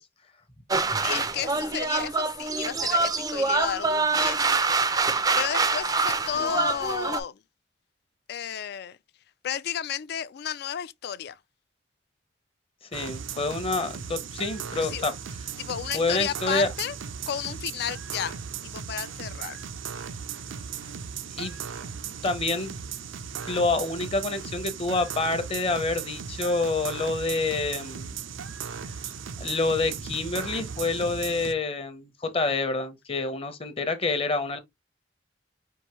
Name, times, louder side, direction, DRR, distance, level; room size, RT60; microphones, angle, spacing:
sound 1, 0.7-7.2, right 3 dB, 20° right, 0.4 m, -25 dB
voice 1, 1.0-4.6 5.3-7.4 8.3-9.0 9.4-11.4 14.8-15.0 15.6-16.9 17.3-19.6 29.0-29.1, left 9 dB, 55° left, 0.3 m, -32 dB
voice 2, 12.9-15.1 15.9-16.7 21.3-21.6 22.2-22.7 23.5-28.2 29.4-34.6, left 3 dB, 30° left, 0.7 m, -27 dB
sound 2, 12.9-31.5, right 6 dB, 90° right, 0.5 m, -37 dB
4.7 x 2.6 x 3.0 m
head